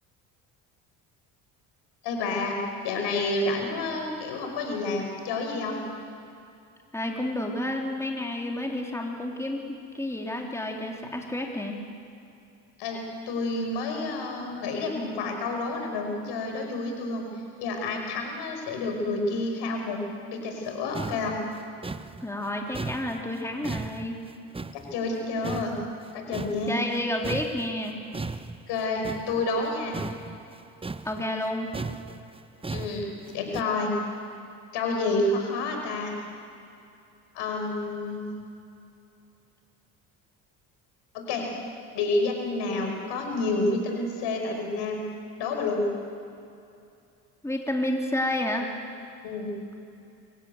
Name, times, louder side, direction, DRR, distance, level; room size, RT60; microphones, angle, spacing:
voice 1, 2.0-5.8 12.8-17.3 17.6-20.0 20.3-21.4 24.7-25.8 26.1-26.9 28.7-30.0 32.7-33.9 34.7-36.1 37.3-38.2 41.1-41.5 41.9-45.0 45.4-45.9 49.2-49.5, left 2 dB, 70° left, 3 dB, 5.3 m, -29 dB
voice 2, 6.9-11.8 22.2-24.2 26.7-28.0 31.0-31.7 47.4-48.7, left 1 dB, 5° left, 0 dB, 3.8 m, -30 dB
sound 1, 20.7-20.8 20.9-25.2 25.4-27.0 27.2-33.6, right 3 dB, 15° right, 0.8 m, -37 dB
25.0 x 17.0 x 8.2 m, 2.6 s
hypercardioid pair, 60°, 43 cm